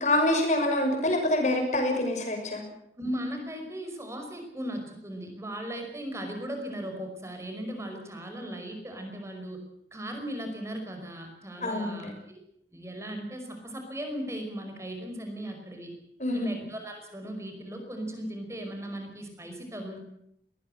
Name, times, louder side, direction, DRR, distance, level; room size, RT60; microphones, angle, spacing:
voice 1, 0.0-2.6 11.6-12.1 16.2-16.5, left 1 dB, 40° left, 3 dB, 6.4 m, -26 dB
voice 2, 3.0-9.6 9.9-12.4 12.7-15.9 16.3-20.0, equal, 15° right, 4 dB, 5.2 m, -37 dB
22.0 x 19.0 x 8.0 m, 0.74 s
head